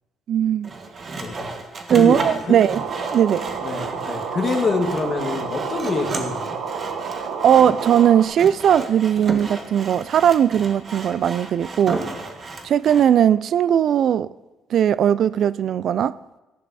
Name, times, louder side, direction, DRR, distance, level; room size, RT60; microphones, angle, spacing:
voice 1, 0.3-0.7 1.9-2.8 3.1-3.4 7.4-12.0 12.6-14.3 14.7-16.1, right 9 dB, 60° right, 0.3 m, -18 dB
Sawing, 0.6-13.1, right 3 dB, 35° right, 1.6 m, -33 dB
voice 2, 1.1-1.5 1.9-2.2 2.5-2.6 3.6-6.6, left 4 dB, 35° left, 1.8 m, -26 dB
sound 1, 2.7-8.2, right 5 dB, 85° right, 1.4 m, -30 dB
14.0 x 11.0 x 4.2 m
cardioid pair, 110°, 0 cm